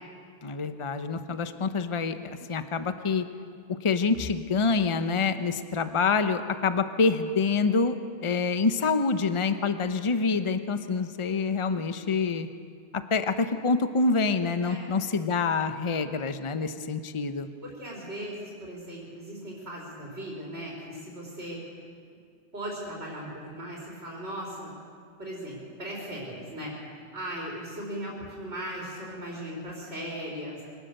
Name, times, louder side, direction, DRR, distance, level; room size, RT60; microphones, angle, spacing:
voice 1, 0.4-3.3 3.7-8.0 8.2-12.5 12.9-17.5, left 4 dB, 30° left, 9 dB, 0.8 m, -26 dB
voice 2, 14.6-14.9 17.6-21.6 22.5-24.7 25.2-26.8 27.1-30.6, right 1 dB, 65° right, -5 dB, 4.5 m, -38 dB
24.5 x 18.0 x 6.6 m, 2.3 s
omnidirectional pair, 1.2 m